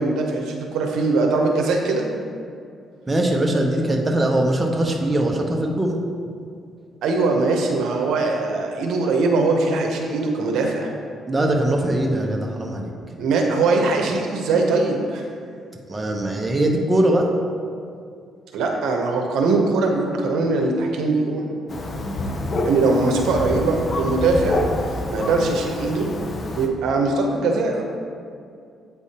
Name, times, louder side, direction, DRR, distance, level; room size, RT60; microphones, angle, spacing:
voice 1, 0.0-2.0 7.0-10.9 13.2-15.2 18.5-21.5 22.6-24.6 25.1-26.1 26.6-27.9, right 3 dB, 80° right, 1 dB, 0.8 m, -21 dB
voice 2, 3.1-6.0 11.3-12.9 15.9-17.3, right 1 dB, 20° right, 0 dB, 0.8 m, -21 dB
Thunder, 21.7-26.7, left 1 dB, 45° left, 0.6 m, -27 dB
8.3 x 3.5 x 4.2 m, 2.3 s
cardioid pair, 90°, 0 cm